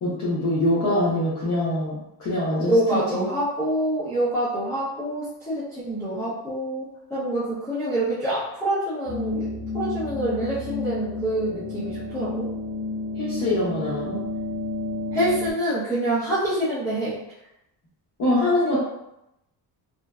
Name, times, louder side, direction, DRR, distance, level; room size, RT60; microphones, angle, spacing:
voice 1, 0.0-3.2 13.1-14.2 18.2-18.8, left 1 dB, 45° left, -8 dB, 0.7 m, -24 dB
voice 2, 2.7-9.5 9.7-12.5 15.1-17.2, right 1 dB, 5° left, -13 dB, 0.6 m, -26 dB
sound 1, 9.0-15.5, left 2 dB, 80° right, 0.9 m, -30 dB
2.6 x 2.1 x 2.2 m, 0.86 s
cardioid pair, 145°, 42 cm